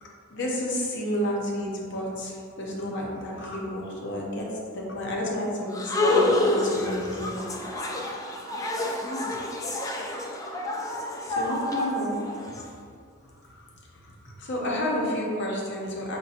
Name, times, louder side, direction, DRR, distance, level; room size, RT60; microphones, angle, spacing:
voice 1, 0.0-4.5 4.7-7.4 7.7-8.3 9.2-9.4 11.3-12.6 13.2-13.6 13.9-16.2, left 1 dB, 60° left, -2 dB, 0.7 m, -31 dB
sound 1, 5.7-12.6, left 2 dB, 15° left, 0.3 m, -28 dB
5.1 x 2.2 x 2.7 m, 2.2 s
head